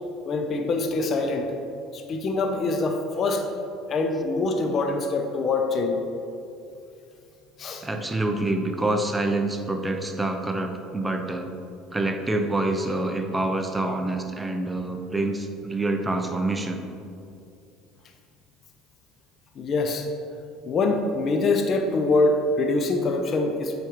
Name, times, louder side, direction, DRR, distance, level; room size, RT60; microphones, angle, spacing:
voice 1, 0.3-1.6 1.9-3.5 3.9-6.0 7.6-7.8 19.6-20.1 20.6-23.8, left 3 dB, 45° left, 5 dB, 0.6 m, -24 dB
voice 2, 7.8-11.5 11.9-16.8, right 2 dB, 15° right, 5 dB, 0.6 m, -26 dB
7.7 x 4.8 x 3.0 m, 2.6 s
supercardioid pair, 85°, 0 cm